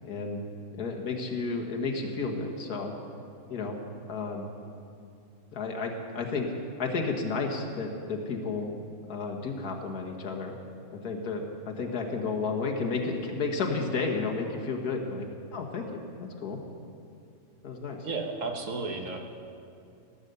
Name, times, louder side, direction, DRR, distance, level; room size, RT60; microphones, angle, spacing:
voice 1, 0.0-0.4 0.8-2.9 3.5-3.8 4.1-4.5 5.5-6.5 6.8-8.7 9.1-10.6 10.9-16.0 16.4-16.6 17.6-18.1, left 4 dB, 80° left, 1 dB, 1.9 m, -32 dB
voice 2, 18.0-19.2, right 3 dB, 60° right, 3 dB, 1.5 m, -33 dB
16.5 x 8.1 x 6.7 m, 2.5 s
omnidirectional pair, 1.6 m